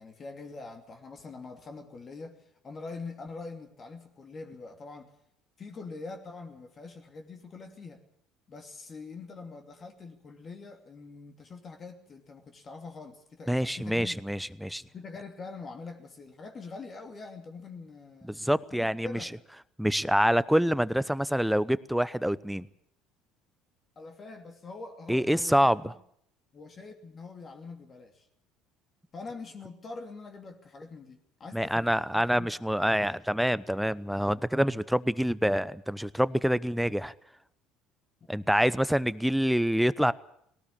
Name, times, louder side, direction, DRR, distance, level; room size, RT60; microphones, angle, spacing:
voice 1, 0.0-5.1 5.6-8.0 8.5-14.2 14.8-18.3 18.8-19.4 24.0-25.9 26.5-28.2 29.1-32.5, left 4 dB, 35° left, 2.9 m, -44 dB
voice 2, 13.5-14.8 18.3-19.3 19.8-22.7 25.1-25.9 31.5-37.1 38.3-40.1, equal, ahead, 0.8 m, -26 dB
19.0 x 18.5 x 8.6 m
hypercardioid pair, 60°, 0 cm